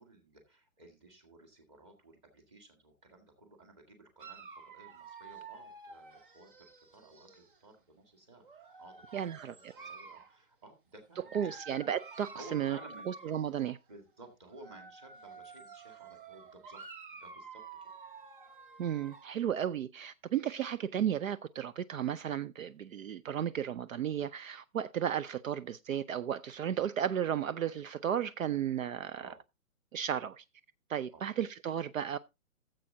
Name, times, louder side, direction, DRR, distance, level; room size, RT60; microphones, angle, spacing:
voice 1, 0.0-9.3 9.8-11.6 12.3-13.3 13.9-16.8 17.1-17.9 29.2-29.4 31.1-31.3, right 2 dB, 20° right, 1.9 m, -55 dB
Dog, 4.2-7.6 8.4-10.4 11.1-13.8 14.5-19.4, right 4 dB, 40° right, 0.9 m, -50 dB
voice 2, 9.1-9.5 11.3-12.8 13.1-13.8 18.8-29.3 29.9-30.4 30.9-32.2, right 9 dB, 70° right, 0.6 m, -34 dB
14.5 x 7.7 x 2.7 m
hypercardioid pair, 170°, 42 cm